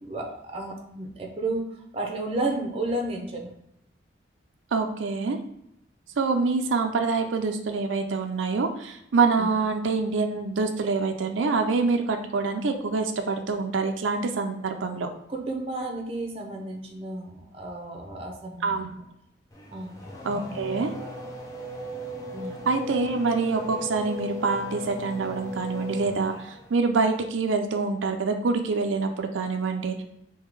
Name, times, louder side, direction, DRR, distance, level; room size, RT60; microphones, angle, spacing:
voice 1, 0.0-3.5 9.4-9.6 15.3-19.0 19.7-20.0 20.3-20.6 22.3-22.5, right 2 dB, 30° right, 1 dB, 0.7 m, -32 dB
voice 2, 4.7-5.4 6.2-15.1 18.6-18.9 20.2-20.9 22.7-30.0, right 4 dB, 90° right, 5 dB, 0.4 m, -26 dB
Race car auto racing / Accelerating revving vroom, 19.5-26.8, left 2 dB, 15° left, 0.6 m, -37 dB
3.7 x 2.8 x 4.7 m, 0.78 s
head